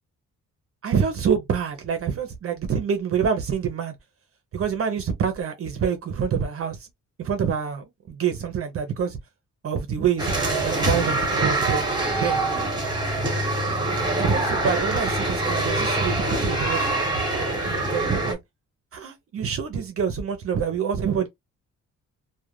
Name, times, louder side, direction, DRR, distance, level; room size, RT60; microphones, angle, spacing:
voice 1, 0.8-3.9 4.5-6.9 7.2-9.2 9.6-11.8 12.1-12.4 14.2-16.9 17.6-18.4 18.9-21.3, right 7 dB, 50° right, 0.6 m, -26 dB
sound 1, 10.2-18.3, right 2 dB, 15° right, 1.0 m, -24 dB
2.3 x 2.2 x 3.0 m
wide cardioid pair, 165°, 29 cm